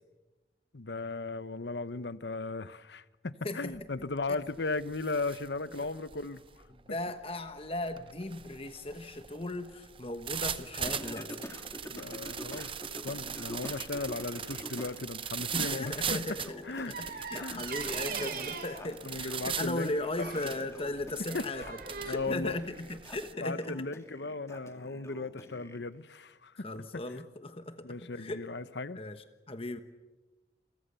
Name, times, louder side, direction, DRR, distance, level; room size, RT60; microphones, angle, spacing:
voice 1, 0.7-6.4 11.9-12.7 13.0-16.2 16.6-16.9 17.4-17.6 18.1-18.4 19.0-19.9 20.4-20.5 21.3-21.4 22.1-22.6 23.4-26.6 27.8-29.0, left 3 dB, 70° left, 15 dB, 1.0 m, -36 dB
voice 2, 3.4-3.8 4.3-4.4 5.8-5.9 6.9-11.4 15.5-16.4 17.0-23.8 26.6-28.4 28.9-29.8, left 2 dB, 30° left, 9 dB, 1.2 m, -37 dB
sound 1, 3.7-4.0 4.4-23.3, right 8 dB, 30° right, 0.8 m, -40 dB
Singing, 10.9-15.0 15.4-25.8, left 1 dB, 15° left, 2.4 m, -47 dB
sound 2, 16.9-18.8 20.2-20.6 21.2-22.1, right 5 dB, 55° right, 4.1 m, -41 dB
29.5 x 23.5 x 7.0 m, 1.1 s
head